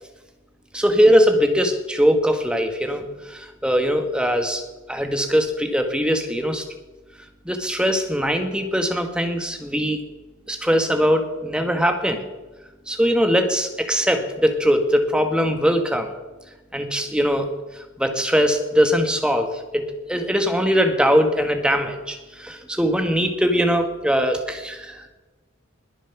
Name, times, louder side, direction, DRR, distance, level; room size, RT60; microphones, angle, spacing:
voice 1, 0.7-4.6 4.9-6.6 7.4-10.0 10.5-12.3 12.9-16.1 16.7-17.5 18.0-19.8 20.1-25.1, equal, 5° right, 5 dB, 1.3 m, -21 dB
20.5 x 7.2 x 5.9 m, 1.2 s
head